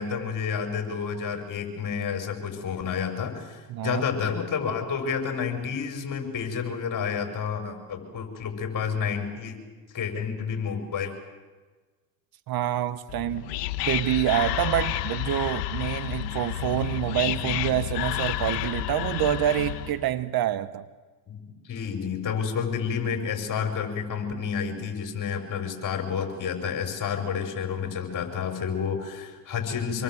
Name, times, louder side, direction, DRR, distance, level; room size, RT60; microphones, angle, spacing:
voice 1, 0.0-9.6 9.9-11.1 21.3-21.4 21.6-30.0, left 6 dB, 40° left, 5 dB, 6.3 m, -30 dB
voice 2, 3.7-4.0 12.5-13.5 13.8-20.8, right 12 dB, 45° right, 14 dB, 1.2 m, -27 dB
Whispering, 13.1-20.0, left 13 dB, 75° left, 1.6 m, -30 dB
27.0 x 21.5 x 8.0 m, 1.3 s
hypercardioid pair, 85°, 49 cm